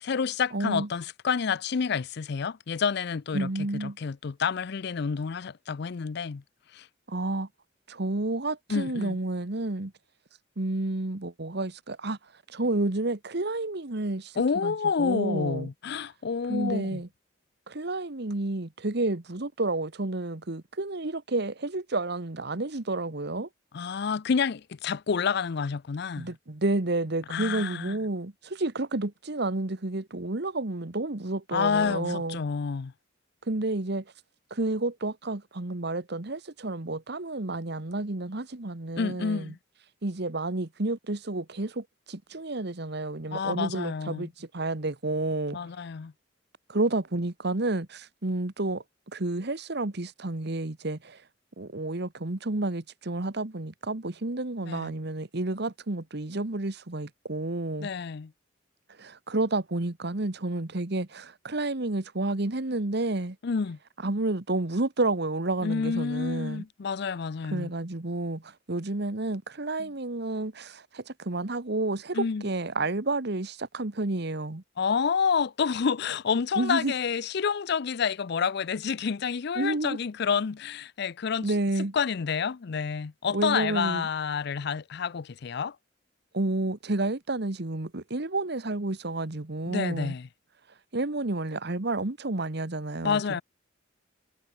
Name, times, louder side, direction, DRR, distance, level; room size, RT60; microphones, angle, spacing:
voice 1, 0.0-6.4 6.7-6.9 8.7-9.2 14.4-17.0 23.7-26.3 27.3-27.9 31.5-32.9 39.0-39.6 43.3-44.3 45.5-46.1 54.7-54.9 57.8-58.3 63.4-63.8 65.6-67.7 72.1-72.4 74.8-81.5 81.9-85.8 89.7-90.3 93.0-93.4, left 6 dB, 55° left, 0.5 m, -29 dB
voice 2, 0.5-0.9 3.3-4.0 7.1-7.5 7.9-9.9 10.6-15.7 16.5-17.1 17.7-23.5 26.2-32.4 33.4-34.1 34.5-39.5 40.0-45.7 46.7-51.3 51.6-57.9 58.9-63.4 64.0-66.6 67.4-74.6 76.6-76.9 79.5-80.0 81.4-81.9 83.3-84.1 86.3-90.1 90.7-93.4, right 2 dB, 55° right, 1.4 m, -30 dB
head